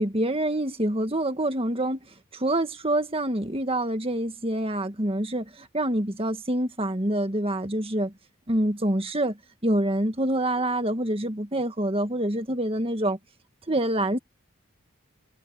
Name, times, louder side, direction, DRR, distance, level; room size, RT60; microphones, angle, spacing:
voice 1, 0.0-2.0 2.3-8.1 8.5-9.4 9.6-13.2 13.7-14.2, right 1 dB, 25° right, 1.8 m, -26 dB
head